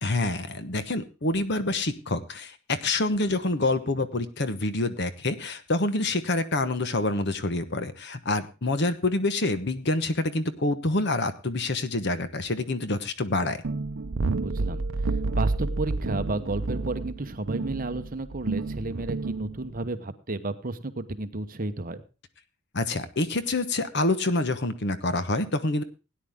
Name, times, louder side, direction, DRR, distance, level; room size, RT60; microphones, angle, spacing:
voice 1, 0.0-13.6 22.7-25.8, left 2 dB, 55° left, 11 dB, 1.2 m, -27 dB
sound 1, 13.6-19.8, right 3 dB, 65° right, 0.7 m, -30 dB
voice 2, 14.3-22.0, right 2 dB, 40° right, 9 dB, 1.0 m, -32 dB
17.5 x 9.9 x 3.6 m, 0.31 s
head